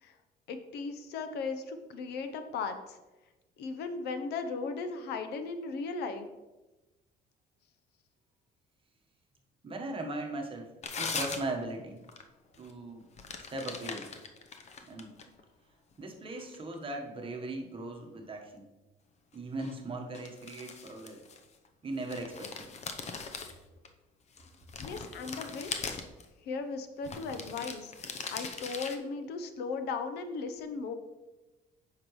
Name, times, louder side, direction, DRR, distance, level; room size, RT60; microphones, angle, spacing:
voice 1, 0.5-3.0 3.6-6.3 24.8-25.7 26.4-27.9 28.3-30.9, left 4 dB, 80° left, 8 dB, 0.8 m, -37 dB
voice 2, 9.6-10.7 11.0-12.0 12.6-13.1 13.5-14.1 14.9-15.1 16.0-18.6 19.3-21.2 21.8-22.7, right 2 dB, 30° right, 2 dB, 1.3 m, -38 dB
sound 1, 10.8-11.7 12.0-12.2 12.5-12.7 13.2-15.4 15.9-16.9 19.6-19.8 20.1-21.7 22.0-23.9 24.4-26.2 27.0-29.0, left 5 dB, 40° left, 0.8 m, -40 dB
8.7 x 5.8 x 3.2 m, 1.1 s
cardioid pair, 110°, 17 cm